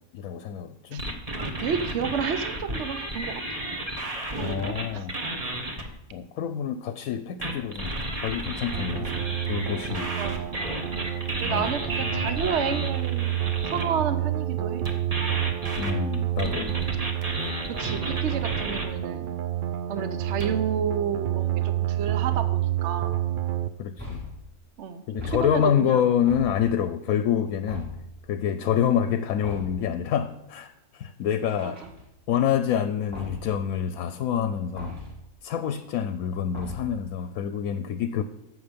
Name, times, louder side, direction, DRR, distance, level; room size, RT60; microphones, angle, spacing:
voice 1, 0.1-1.2 4.4-5.2 6.1-7.9 8.2-9.1 9.5-10.1 11.5-11.7 15.8-16.7 20.3-20.4 23.8-24.2 25.1-27.9 28.3-31.8 32.3-34.9 35.4-38.2, left 9 dB, 75° left, 11 dB, 1.0 m, -27 dB
sound 1, 1.0-5.9 7.4-13.8 14.9-18.9 20.4-20.5, right 1 dB, 25° right, 1.2 m, -32 dB
voice 2, 1.3-3.6 4.4-5.1 10.2-10.6 10.9-13.4 13.7-14.9 16.4-17.0 17.6-19.3 19.9-23.1 24.8-26.0 31.6-31.9, right 7 dB, 60° right, 10 dB, 1.0 m, -31 dB
sound 2, 8.7-23.7, right 12 dB, 75° right, 0.4 m, -29 dB
sound 3, 24.0-24.5 25.2-25.8 26.3-26.9 27.7-28.2 29.4-29.9 31.5-32.3 33.1-33.6 34.8-35.3 36.5-37.1, left 3 dB, 5° right, 4.3 m, -38 dB
12.5 x 8.0 x 5.2 m, 0.86 s
omnidirectional pair, 1.5 m